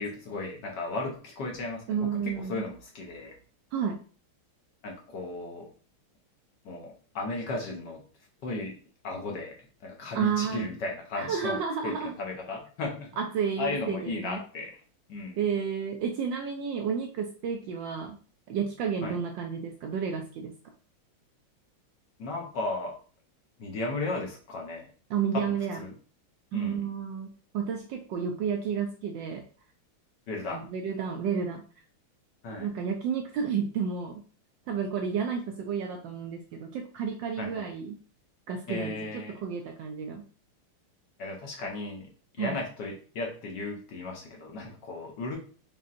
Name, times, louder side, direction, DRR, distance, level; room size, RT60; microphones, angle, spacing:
voice 1, 0.0-3.3 4.8-5.7 6.6-8.0 8.4-8.8 9.0-9.6 9.8-13.1 13.6-14.8 15.1-15.4 19.0-19.2 22.2-23.0 23.6-24.9 25.3-25.9 26.5-26.8 30.3-30.7 32.4-32.7 37.4-37.7 38.7-39.4 41.2-42.1 42.4-45.4, left 3 dB, 60° left, 1 dB, 1.3 m, -35 dB
voice 2, 1.9-2.6 3.7-4.0 10.1-10.7 11.1-12.1 13.2-14.4 15.4-18.2 18.5-20.5 25.1-25.8 26.5-29.4 30.5-31.6 32.6-34.2 34.7-37.9 38.5-40.3 42.4-42.6, right 7 dB, 75° right, 3 dB, 1.1 m, -31 dB
5.5 x 3.1 x 2.5 m, 0.40 s
omnidirectional pair, 2.4 m